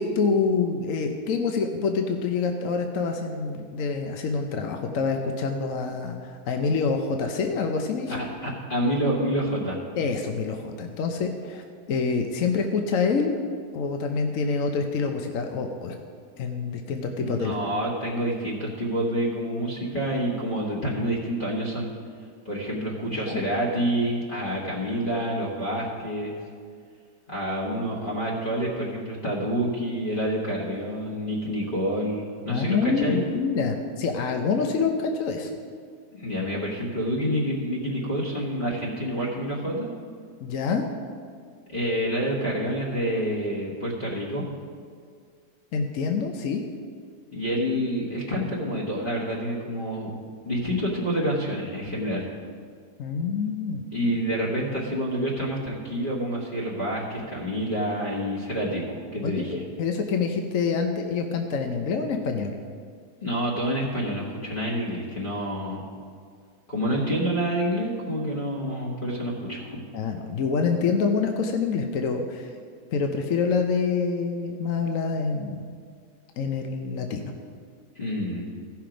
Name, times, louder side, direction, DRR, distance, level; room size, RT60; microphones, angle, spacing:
voice 1, 0.0-8.2 10.0-13.4 13.7-16.0 16.4-17.6 23.1-23.4 32.5-35.5 40.4-40.8 45.7-46.7 53.0-53.8 59.2-59.4 59.8-62.6 69.9-72.5 72.9-75.7 76.4-77.2, left 5 dB, 60° left, 4 dB, 1.0 m, -26 dB
voice 2, 8.1-9.8 17.2-21.9 22.4-26.3 27.3-33.2 36.1-39.9 41.7-44.4 47.3-50.2 50.4-52.3 53.9-58.9 59.1-59.6 63.2-65.8 66.7-69.8 77.9-78.4, equal, 35° left, -5 dB, 1.5 m, -28 dB
15.5 x 5.9 x 5.1 m, 2.1 s
omnidirectional pair, 1.7 m